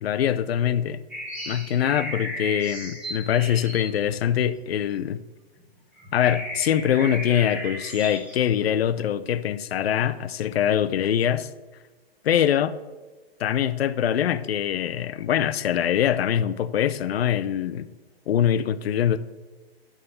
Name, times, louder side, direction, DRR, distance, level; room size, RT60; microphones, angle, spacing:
voice 1, 0.0-1.0 1.5-5.2 6.1-11.5 12.2-12.8 13.4-17.9 18.3-19.2, left 10 dB, 75° left, 0.6 m, -23 dB
sound 1, 1.1-5.0 5.6-5.7 6.0-8.5, equal, 5° right, 1.0 m, -35 dB
9.8 x 3.7 x 7.0 m
hypercardioid pair, 175°, 31 cm